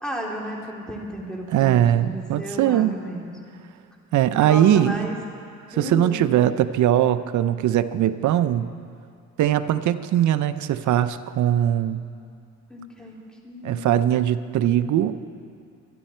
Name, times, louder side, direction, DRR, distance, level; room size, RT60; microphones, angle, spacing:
voice 1, 0.0-3.3 4.4-5.2 5.7-6.2 12.7-13.1 13.4-13.9, equal, 5° left, -3 dB, 3.2 m, -33 dB
voice 2, 1.5-3.0 4.1-5.1 5.8-8.7 9.4-12.0 13.6-15.1, right 11 dB, 75° right, 12 dB, 0.7 m, -20 dB
25.0 x 10.5 x 4.4 m, 2.4 s
cardioid pair, 90°, 30 cm